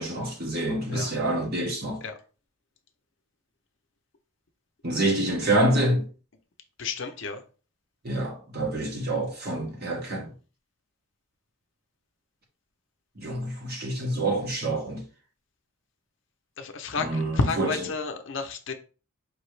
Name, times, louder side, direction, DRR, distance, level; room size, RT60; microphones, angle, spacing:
voice 1, 0.0-2.0 4.8-6.1 8.0-10.3 13.2-15.0 17.0-18.0, right 1 dB, 45° right, 1.3 m, -27 dB
voice 2, 6.8-7.4 16.6-18.7, left 4 dB, 55° left, 0.6 m, -30 dB
5.2 x 2.8 x 3.2 m
head